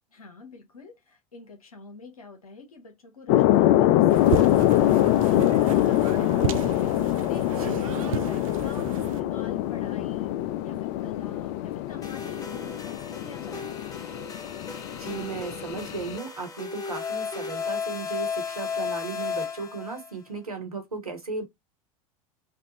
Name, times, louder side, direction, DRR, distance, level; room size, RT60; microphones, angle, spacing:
voice 1, 0.1-6.3 6.8-7.8 8.2-10.3 10.6-13.8, left 3 dB, 80° left, 1.1 m, -46 dB
sound 1, 3.3-16.2, left 13 dB, 50° left, 0.4 m, -24 dB
sound 2, 4.1-9.2, right 10 dB, 70° right, 0.5 m, -33 dB
voice 2, 7.6-7.9 14.9-21.5, right 4 dB, 85° right, 1.2 m, -36 dB
sound 3, 12.0-20.1, left 5 dB, 20° left, 0.8 m, -34 dB
3.4 x 2.5 x 2.7 m
figure-of-eight pair, 80°, 18 cm